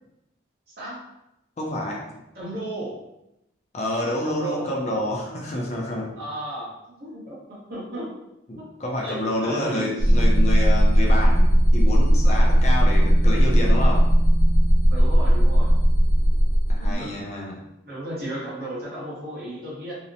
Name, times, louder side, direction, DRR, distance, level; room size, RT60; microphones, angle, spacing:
voice 1, 1.6-2.0 3.7-6.1 8.5-11.5 11.7-14.1 16.7-17.6, left 1 dB, 35° left, -2 dB, 0.4 m, -28 dB
voice 2, 2.3-3.1 4.2-4.7 6.2-8.1 8.6-8.7 9.0-10.2 14.8-15.7 16.8-17.1 17.9-19.9, right 1 dB, 50° right, -7 dB, 0.9 m, -34 dB
sound 1, 10.0-17.0, equal, 80° left, 0.6 m, -17 dB
2.8 x 2.0 x 2.6 m, 0.88 s
head